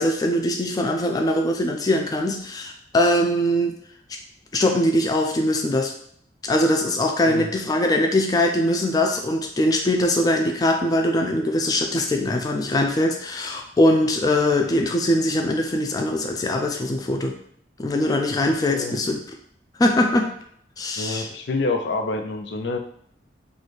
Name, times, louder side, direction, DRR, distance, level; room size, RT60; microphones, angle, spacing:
voice 1, 0.0-3.7 4.1-4.2 4.5-5.9 6.4-17.3 17.8-19.2 19.8-20.3 20.8-21.3, left 1 dB, 20° left, 3 dB, 0.3 m, -22 dB
voice 2, 21.0-22.8, left 3 dB, 85° left, 4 dB, 0.5 m, -27 dB
3.2 x 2.3 x 4.1 m, 0.65 s
head